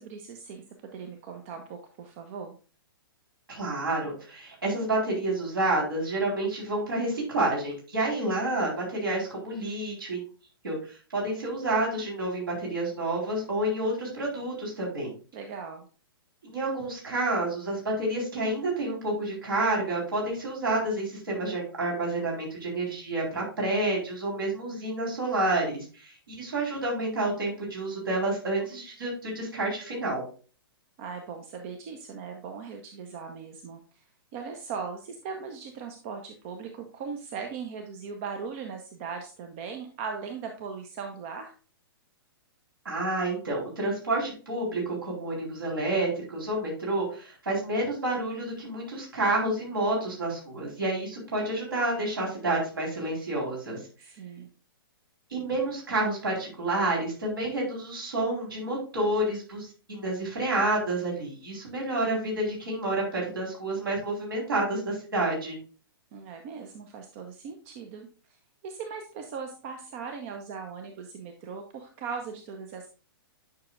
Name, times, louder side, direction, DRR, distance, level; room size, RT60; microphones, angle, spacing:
voice 1, 0.0-2.5 15.3-15.9 31.0-34.0 34.3-41.5 54.0-54.5 66.1-68.1 68.6-72.9, right 5 dB, 35° right, 5 dB, 0.8 m, -39 dB
voice 2, 3.5-10.2 10.6-15.1 16.5-30.2 42.8-53.8 55.3-65.6, right 2 dB, 65° right, -3 dB, 4.1 m, -29 dB
9.4 x 5.9 x 2.4 m, 0.38 s
figure-of-eight pair, 115°, 13 cm